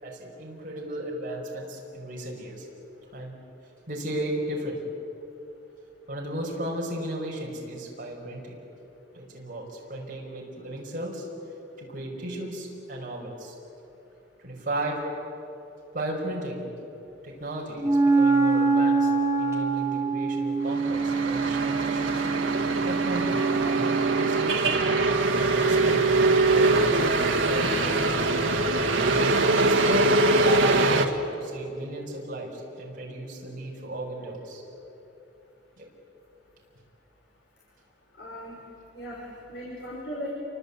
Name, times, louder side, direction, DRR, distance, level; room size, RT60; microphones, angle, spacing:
voice 1, 0.0-2.7 3.1-3.3 3.9-4.8 6.1-8.6 9.1-11.3 11.8-13.5 14.4-15.0 15.9-16.6 17.2-19.1 19.4-22.3 22.8-24.7 25.3-26.0 26.5-28.4 29.6-34.6 35.8-35.9, right 1 dB, 45° right, -2 dB, 5.4 m, -35 dB
Wind instrument woodwind instrument, 17.8-24.5, right 4 dB, 15° right, 2.6 m, -25 dB
sound 1, 20.7-31.1, right 2 dB, 80° right, 1.8 m, -23 dB
voice 2, 38.2-38.5 38.9-40.3, equal, 60° left, -5 dB, 6.1 m, -36 dB
28.5 x 24.5 x 8.4 m, 2.9 s
head